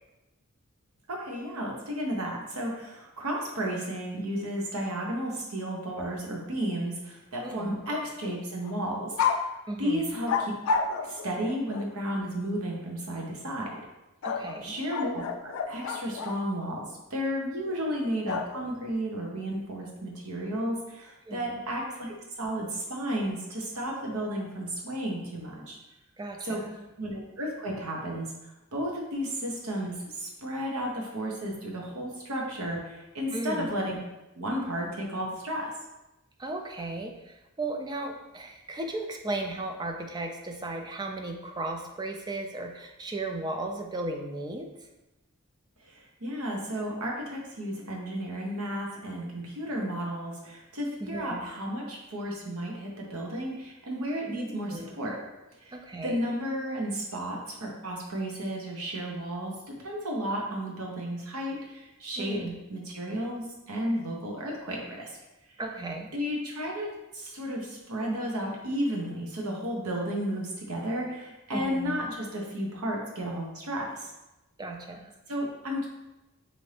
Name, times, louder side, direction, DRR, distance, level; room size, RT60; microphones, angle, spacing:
voice 1, 1.1-9.5 9.8-10.5 10.8-13.8 14.6-25.8 26.4-26.6 27.0-34.0 34.3-35.7 45.8-55.2 55.6-62.4 62.7-65.2 66.1-74.1 75.3-75.9, equal, 80° right, -1 dB, 0.9 m, -33 dB
voice 2, 7.4-7.8 9.7-10.1 14.2-14.7 21.2-21.6 26.2-26.9 33.3-33.7 36.4-44.7 51.0-51.5 54.3-54.9 55.7-56.2 62.2-62.5 65.6-66.1 71.5-72.0 74.6-75.1, right 2 dB, 20° right, 3 dB, 0.3 m, -36 dB
sound 1, 7.7-8.3 8.6-8.8 9.2-9.5 10.3-11.9 14.2-16.4 18.3-18.9, left 5 dB, 65° left, 0.3 m, -31 dB
4.2 x 2.6 x 3.3 m, 0.98 s
head